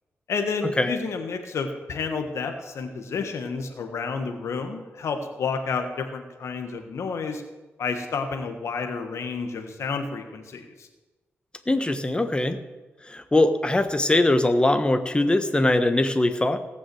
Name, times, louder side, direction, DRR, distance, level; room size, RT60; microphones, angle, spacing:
voice 1, 0.3-7.4 7.8-10.9, left 5 dB, 80° left, 6 dB, 1.6 m, -30 dB
voice 2, 11.7-12.6 13.0-16.6, left 2 dB, 20° left, 9 dB, 1.3 m, -21 dB
17.5 x 6.2 x 7.9 m, 1.2 s
cardioid pair, 80°, 5 cm